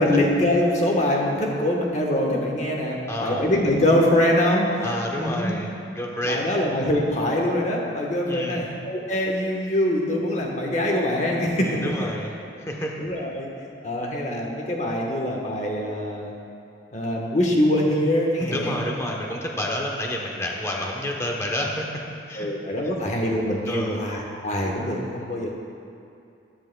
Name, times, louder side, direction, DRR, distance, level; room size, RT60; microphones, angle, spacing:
voice 1, 0.0-4.9 5.2-5.6 6.2-11.8 13.0-13.5 13.8-16.3 16.9-18.9 22.4-25.5, left 1 dB, 40° left, 0 dB, 1.1 m, -23 dB
voice 2, 3.1-3.5 4.8-5.7 5.9-6.5 8.3-8.6 11.6-12.3 12.6-12.9 18.4-21.9 22.3-22.5 23.6-24.0, left 1 dB, 15° left, -1 dB, 0.8 m, -29 dB
13.0 x 10.5 x 2.2 m, 2.6 s
head